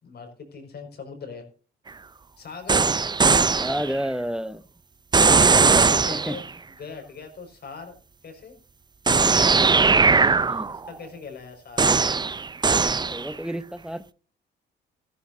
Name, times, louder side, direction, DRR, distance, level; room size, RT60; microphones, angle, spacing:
voice 1, 0.0-1.5 2.4-3.0 5.8-8.0 8.2-8.6 9.2-9.8 10.7-11.9, left 5 dB, 55° left, 4 dB, 5.6 m, -41 dB
sound 1, 2.7-4.0 5.1-6.5 9.1-10.9 11.8-13.3, right 4 dB, 20° right, 0.6 m, -19 dB
voice 2, 3.6-4.6 6.1-6.4 9.6-9.8 10.5-10.7 13.1-14.0, equal, 5° right, 14 dB, 0.9 m, -30 dB
14.5 x 13.5 x 2.7 m, 0.39 s
cardioid pair, 90°, 20 cm